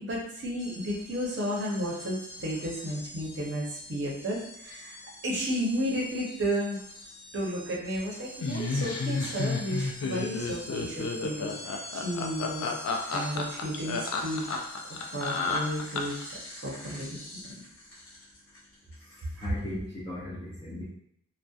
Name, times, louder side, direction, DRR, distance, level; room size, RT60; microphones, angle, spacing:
voice 1, 0.0-5.0 5.2-6.8 7.3-11.5 11.9-12.7 13.1-14.4 15.1-16.1 16.6-17.4, equal, 55° right, -3 dB, 0.6 m, -32 dB
sound 1, 0.6-19.7, left 1 dB, 40° left, 0.7 m, -45 dB
Laughter, 8.4-16.3, left 4 dB, 90° left, 0.3 m, -31 dB
voice 2, 19.0-20.8, left 1 dB, 20° left, -8 dB, 0.4 m, -38 dB
2.6 x 2.0 x 2.3 m, 0.72 s
head